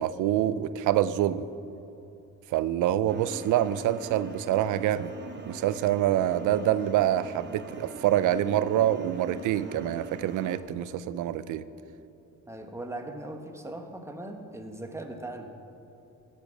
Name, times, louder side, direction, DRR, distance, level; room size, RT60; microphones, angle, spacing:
voice 1, 0.0-1.5 2.5-5.1 5.5-11.6, right 12 dB, 85° right, 15 dB, 0.5 m, -26 dB
sound 1, 3.1-10.6, right 2 dB, 35° right, 1.4 m, -43 dB
voice 2, 12.5-15.5, right 1 dB, 10° right, 4 dB, 1.3 m, -39 dB
15.5 x 8.1 x 6.1 m, 2.9 s
cardioid pair, 90°, 30 cm